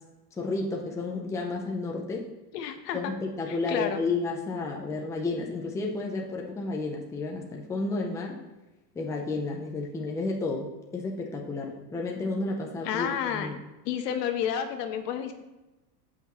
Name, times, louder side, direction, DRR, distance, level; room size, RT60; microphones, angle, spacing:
voice 1, 0.4-2.3 2.9-8.4 8.9-13.6, left 3 dB, 5° left, 0 dB, 0.6 m, -32 dB
voice 2, 2.5-3.1 3.5-4.0 12.8-13.5 13.8-15.3, left 9 dB, 75° left, 7 dB, 1.3 m, -30 dB
15.5 x 5.9 x 3.1 m, 1.0 s
supercardioid pair, 155°, 49 cm